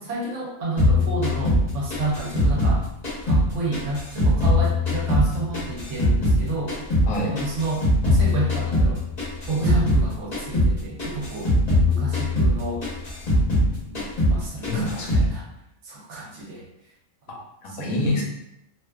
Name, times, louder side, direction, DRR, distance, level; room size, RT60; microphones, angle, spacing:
voice 1, 0.0-2.8 3.2-6.8 7.3-9.0 9.5-11.5 11.9-12.9 13.8-15.4 15.8-16.7 17.7-18.2, right 2 dB, 65° right, -3 dB, 0.9 m, -30 dB
sound 1, 0.8-3.5 3.7-6.4 6.7-10.1 10.3-10.7 11.0-13.7 13.9-14.4 14.6-15.3, left 1 dB, 35° left, 0.8 m, -21 dB
voice 2, 14.7-15.3 17.3-18.2, left 1 dB, 80° left, -1 dB, 1.1 m, -27 dB
2.5 x 2.3 x 2.2 m, 0.82 s
omnidirectional pair, 1.4 m